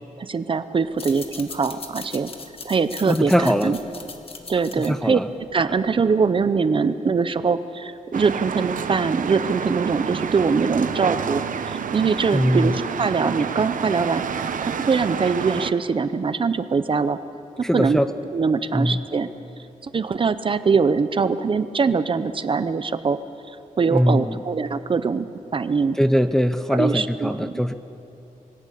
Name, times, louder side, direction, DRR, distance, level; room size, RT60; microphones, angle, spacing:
voice 1, 0.2-2.3 2.6-3.8 4.5-5.2 5.5-14.2 14.6-17.2 17.6-18.0 18.3-19.3 19.8-23.2 23.8-25.3 25.5-26.0 26.7-27.6, right 5 dB, 35° right, 12 dB, 0.7 m, -22 dB
sound 1, 0.9-6.0, left 4 dB, 40° left, 1.5 m, -40 dB
voice 2, 3.1-3.7 4.8-5.3 12.3-12.8 17.6-18.1 18.7-19.1 23.9-24.4 26.0-27.7, equal, 5° left, 9 dB, 0.5 m, -21 dB
sound 2, 8.1-15.7, right 7 dB, 65° right, 0.8 m, -29 dB
22.5 x 17.5 x 8.5 m, 2.8 s
wide cardioid pair, 180°, 15 cm